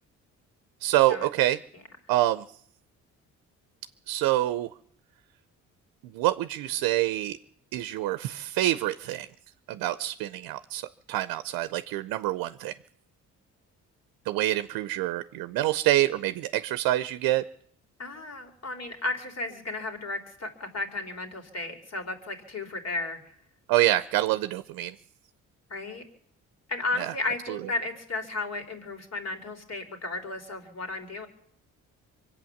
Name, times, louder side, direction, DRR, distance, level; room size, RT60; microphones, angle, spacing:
voice 1, 0.8-1.6 2.1-2.4 4.1-4.7 6.1-7.4 7.7-9.3 9.7-12.7 14.3-17.4 23.7-24.9 27.0-27.1 27.5-27.6, right 15 dB, 90° right, 13 dB, 0.6 m, -26 dB
voice 2, 18.0-23.2 25.7-26.0 26.7-31.3, left 2 dB, 50° left, 6 dB, 3.4 m, -34 dB
24.0 x 8.6 x 7.1 m, 0.65 s
supercardioid pair, 60°, 34 cm